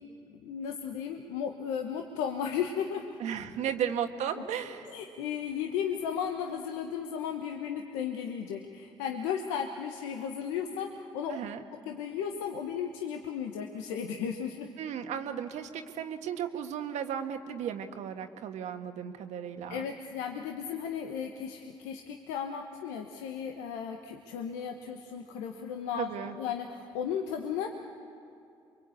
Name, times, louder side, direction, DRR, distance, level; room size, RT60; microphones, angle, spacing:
voice 1, 0.3-3.2 4.9-11.4 11.7-14.7 19.7-27.7, left 7 dB, 85° left, 3 dB, 1.2 m, -35 dB
voice 2, 3.2-4.9 11.3-11.6 14.8-19.9 26.0-26.4, right 8 dB, 70° right, 6 dB, 1.5 m, -35 dB
27.0 x 23.5 x 8.6 m, 2.5 s
hypercardioid pair, 50°, 12 cm